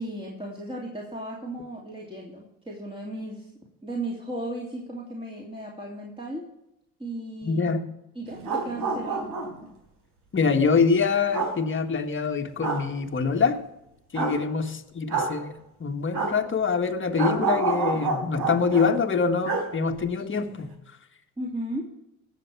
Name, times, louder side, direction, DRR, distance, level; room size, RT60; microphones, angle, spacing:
voice 1, 0.0-3.5 3.8-6.5 7.0-7.8 8.1-9.2 14.2-14.5 21.4-21.8, right 1 dB, 15° right, -3 dB, 3.0 m, -35 dB
voice 2, 7.4-7.9 10.3-13.6 14.1-20.7, left 5 dB, 30° left, 5 dB, 1.6 m, -25 dB
sound 1, 8.3-9.7 11.3-11.5 12.6-12.8 14.2-14.4 15.1-15.3 16.1-16.3 17.2-18.9 19.4-19.7 19.9-20.0, right 4 dB, 75° right, 3.9 m, -28 dB
18.5 x 7.3 x 4.7 m, 0.86 s
supercardioid pair, 70°, 38 cm